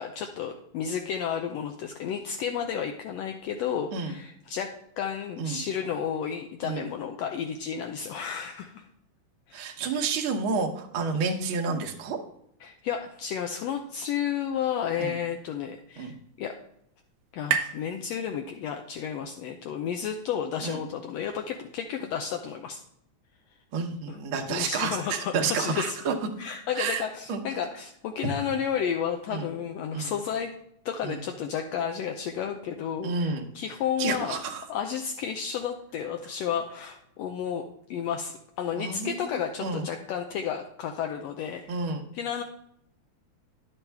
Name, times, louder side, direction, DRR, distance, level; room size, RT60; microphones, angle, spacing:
voice 1, 0.0-4.7 5.0-8.8 9.5-10.1 12.6-16.1 16.4-16.5 17.3-22.8 24.1-24.2 24.5-26.0 26.4-30.5 30.8-34.4 34.7-37.6 37.9-41.8 42.1-42.4, left 8 dB, 80° left, 4 dB, 1.6 m, -32 dB
voice 2, 9.5-12.2 15.0-15.1 16.0-16.1 20.6-20.8 23.7-26.1 26.7-27.4 29.3-29.5 29.9-30.1 31.0-31.2 33.0-33.5 34.0-34.6 38.8-39.3 39.6-39.9 41.7-42.1, right 5 dB, 60° right, 2 dB, 1.4 m, -30 dB
sound 1, 15.2-18.9, right 8 dB, 80° right, 2.0 m, -36 dB
10.5 x 7.2 x 3.4 m, 0.73 s
omnidirectional pair, 3.4 m